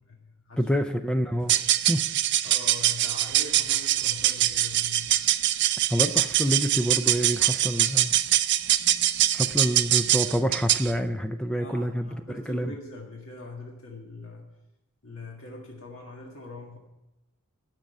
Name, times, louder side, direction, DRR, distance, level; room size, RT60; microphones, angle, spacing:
voice 1, 0.0-0.7 2.4-5.2 11.6-14.5 15.0-16.8, left 2 dB, 65° left, -2 dB, 1.9 m, -42 dB
voice 2, 0.6-1.6 1.9-2.0 5.9-8.2 9.3-12.7, equal, 5° left, 7 dB, 0.4 m, -27 dB
sound 1, 1.4-10.9, right 14 dB, 50° right, 0.5 m, -24 dB
12.0 x 5.5 x 9.0 m, 0.95 s
head